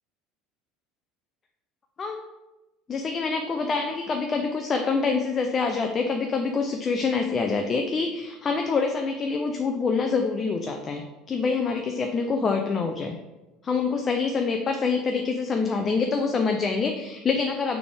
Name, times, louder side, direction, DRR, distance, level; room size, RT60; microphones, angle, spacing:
voice 1, 2.9-13.2 13.6-17.8, left 4 dB, 25° left, 4 dB, 0.3 m, -26 dB
4.0 x 3.3 x 3.4 m, 1.0 s
cardioid pair, 140°, 0 cm